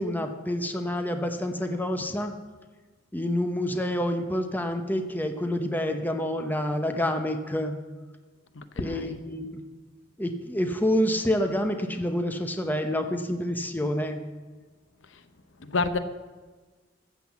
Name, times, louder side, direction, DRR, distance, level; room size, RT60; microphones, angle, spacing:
voice 1, 0.0-2.3 3.1-7.8 8.8-9.6 10.2-14.2, left 1 dB, 10° left, 6 dB, 0.8 m, -28 dB
voice 2, 8.5-9.2 15.6-16.0, left 3 dB, 80° left, 11 dB, 0.8 m, -29 dB
14.0 x 7.7 x 7.1 m, 1.3 s
head